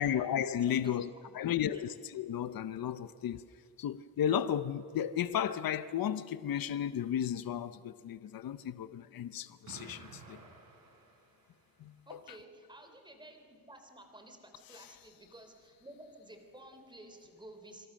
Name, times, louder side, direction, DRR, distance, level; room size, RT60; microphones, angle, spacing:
voice 1, 0.0-1.1 1.3-3.4 3.8-10.4 11.8-12.2 14.7-14.9, left 9 dB, 80° left, 0.7 m, -34 dB
voice 2, 1.2-1.8 12.1-17.9, right 1 dB, 15° right, 3.2 m, -53 dB
Explosion, 9.7-11.8, right 4 dB, 80° right, 4.6 m, -53 dB
26.0 x 25.5 x 6.5 m
wide cardioid pair, 165°, 34 cm